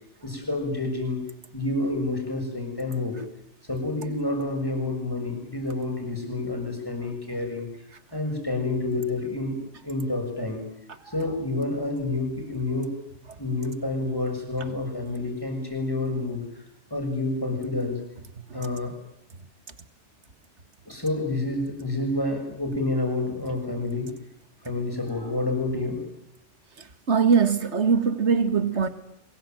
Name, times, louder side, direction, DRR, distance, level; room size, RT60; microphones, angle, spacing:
voice 1, 0.2-1.2 1.5-3.2 3.7-7.7 8.1-9.6 9.8-10.6 11.0-12.9 13.4-16.4 16.9-18.0 18.5-18.9 20.9-24.1 24.6-26.0, left 2 dB, 20° left, 6.7 m, -28 dB
voice 2, 27.1-28.9, right 6 dB, 70° right, 2.1 m, -21 dB
24.0 x 22.0 x 9.1 m
omnidirectional pair, 1.2 m